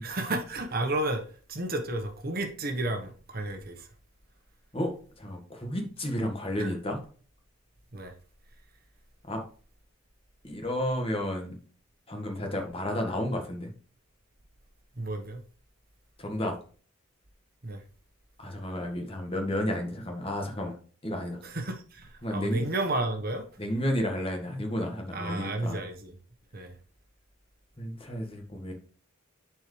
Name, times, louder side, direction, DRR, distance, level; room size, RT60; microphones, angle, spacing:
voice 1, 0.0-3.9 6.6-6.7 7.9-8.1 15.0-15.4 17.6-17.8 21.4-23.5 25.1-26.1 26.5-26.7, right 2 dB, 45° right, 1.3 m, -32 dB
voice 2, 4.7-7.0 9.3-9.4 10.4-11.6 12.1-13.7 16.2-16.6 18.4-20.7 21.0-21.4 22.2-22.6 23.6-25.8 27.8-28.7, left 1 dB, 25° left, 1.6 m, -32 dB
10.5 x 4.6 x 3.3 m
head